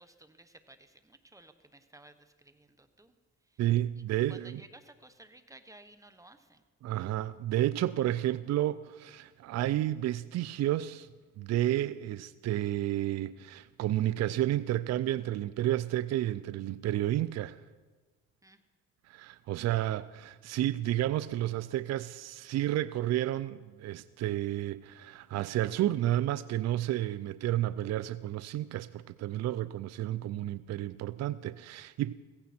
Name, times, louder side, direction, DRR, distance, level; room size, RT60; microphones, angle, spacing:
voice 1, 0.0-3.1 3.5-3.6 4.3-6.6 18.4-18.6 19.7-19.8, right 2 dB, 10° right, 1.1 m, -56 dB
voice 2, 3.6-4.6 6.8-11.1 11.4-17.6 19.1-32.1, right 13 dB, 60° right, 0.4 m, -31 dB
15.5 x 15.5 x 4.3 m
cardioid pair, 90°, 30 cm